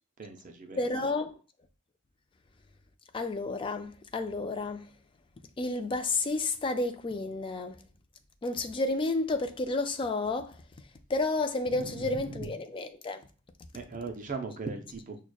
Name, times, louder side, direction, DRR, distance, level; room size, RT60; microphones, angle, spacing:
voice 1, 0.2-0.8 11.7-12.5 13.7-15.2, right 4 dB, 35° right, 0.4 m, -39 dB
voice 2, 0.8-1.4 3.1-4.9 5.6-7.8 8.4-10.6 11.1-13.3, left 2 dB, 25° left, 0.3 m, -31 dB
6.1 x 2.1 x 2.2 m
head